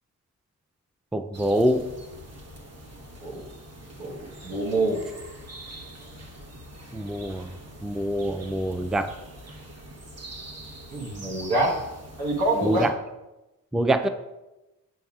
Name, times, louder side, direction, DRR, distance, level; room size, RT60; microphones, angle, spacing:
voice 1, 1.1-1.8 6.9-7.5 7.8-9.1 12.6-12.9 13.7-14.1, right 1 dB, ahead, 9 dB, 0.4 m, -25 dB
sound 1, 1.3-12.9, right 1 dB, 45° right, 1.1 m, -44 dB
voice 2, 4.0-5.0 10.9-11.8 12.2-12.9, right 2 dB, 90° right, -3 dB, 1.3 m, -26 dB
7.0 x 6.3 x 2.4 m, 1.0 s
supercardioid pair, 40°, 37 cm